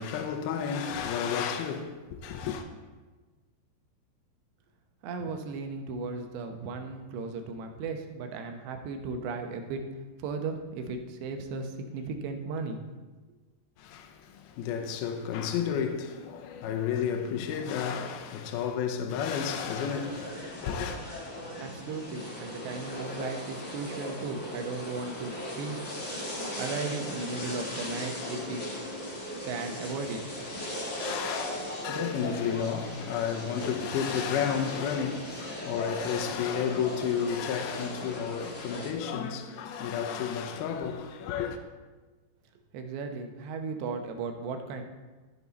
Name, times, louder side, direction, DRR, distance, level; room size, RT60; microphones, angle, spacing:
voice 1, 0.0-2.6 13.8-21.0 31.0-41.6, left 7 dB, 75° left, 2.4 m, -32 dB
voice 2, 5.0-9.8 10.2-12.8 21.6-25.8 26.6-28.6 29.4-30.2 42.7-44.8, right 4 dB, 90° right, 3.2 m, -36 dB
sound 1, 19.1-38.9, left 1 dB, 35° left, 1.1 m, -38 dB
14.0 x 7.1 x 4.1 m
omnidirectional pair, 4.9 m